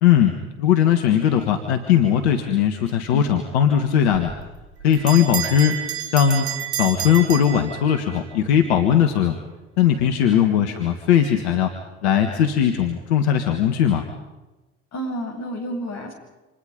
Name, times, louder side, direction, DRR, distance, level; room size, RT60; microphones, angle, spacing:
voice 1, 0.0-4.3 4.8-5.8 6.1-6.5 6.7-9.4 9.8-11.7 12.0-14.1, left 9 dB, 85° left, 6 dB, 1.7 m, -19 dB
Bell, 4.1-8.2, right 10 dB, 90° right, 3.4 m, -30 dB
voice 2, 10.3-10.7 14.9-16.1, equal, 55° left, 2 dB, 8.0 m, -30 dB
29.5 x 27.0 x 5.3 m, 1.1 s
hypercardioid pair, 55°, 32 cm